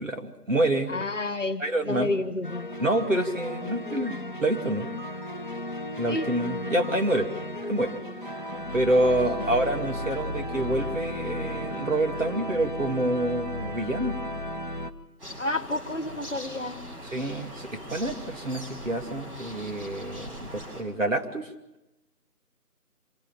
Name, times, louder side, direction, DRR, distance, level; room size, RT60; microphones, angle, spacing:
voice 1, 0.0-1.1 1.6-2.1 2.8-4.9 6.0-7.3 7.7-7.9 8.2-8.3 8.7-14.2 17.1-21.5, right 1 dB, 55° right, 3 dB, 2.7 m, -27 dB
voice 2, 0.9-2.7 6.1-6.3 9.2-9.5 15.4-16.9, left 2 dB, 50° left, 12 dB, 1.5 m, -30 dB
sound 1, 2.4-14.9, left 1 dB, 30° left, 1.1 m, -34 dB
sound 2, 15.2-20.8, equal, 35° right, 7.1 m, -41 dB
26.0 x 17.0 x 7.4 m, 0.96 s
figure-of-eight pair, 175°, 47 cm